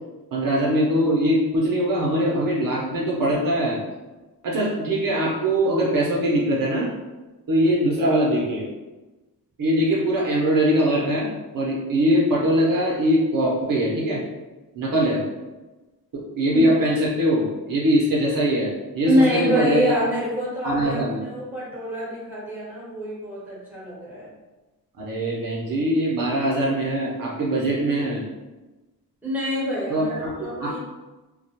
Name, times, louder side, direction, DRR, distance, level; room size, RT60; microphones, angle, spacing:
voice 1, 0.3-3.8 4.4-6.9 7.5-8.6 9.6-11.3 11.5-14.2 14.7-15.2 16.4-20.0 20.6-21.2 25.0-28.2 29.9-30.3 30.6-30.8, equal, 60° right, -4 dB, 0.7 m, -22 dB
voice 2, 19.1-24.3 29.2-30.8, equal, 5° right, -7 dB, 1.1 m, -25 dB
2.3 x 2.1 x 2.8 m, 1.2 s
cardioid pair, 100°, 38 cm